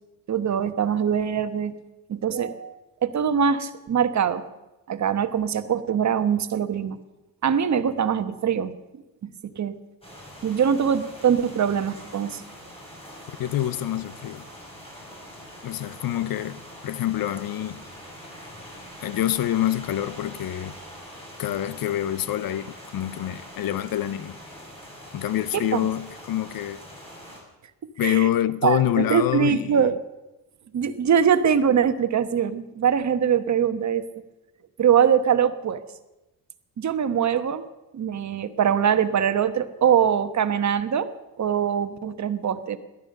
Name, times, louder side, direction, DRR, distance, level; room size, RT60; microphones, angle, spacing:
voice 1, 0.3-1.7 2.1-2.7 3.0-4.4 4.9-7.0 7.4-8.7 9.2-9.8 10.4-12.4 25.5-25.8 28.0-28.3 28.6-29.9 30.7-34.0 34.8-35.8 36.8-37.6 37.9-41.1 41.4-42.8, right 8 dB, 45° right, 1.2 m, -23 dB
sound 1, 10.0-27.4, equal, 15° left, 6.4 m, -43 dB
voice 2, 13.4-14.4 15.6-17.8 19.0-20.7 21.4-24.4 25.1-26.8 28.0-29.8, left 12 dB, 65° left, 0.9 m, -26 dB
18.0 x 12.0 x 6.6 m
cardioid pair, 110°, 38 cm